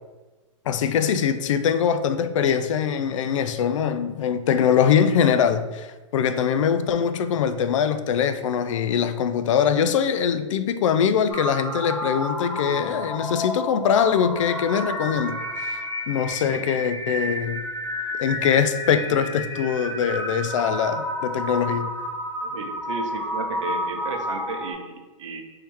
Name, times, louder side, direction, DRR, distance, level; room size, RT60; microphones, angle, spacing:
voice 1, 0.7-17.6 18.2-21.9, left 7 dB, 70° left, 0.4 m, -22 dB
sound 1, 11.3-24.7, left 1 dB, 15° left, 1.2 m, -30 dB
voice 2, 22.4-25.4, right 4 dB, 70° right, 0.7 m, -34 dB
3.5 x 3.2 x 4.4 m
hypercardioid pair, 145°, 17 cm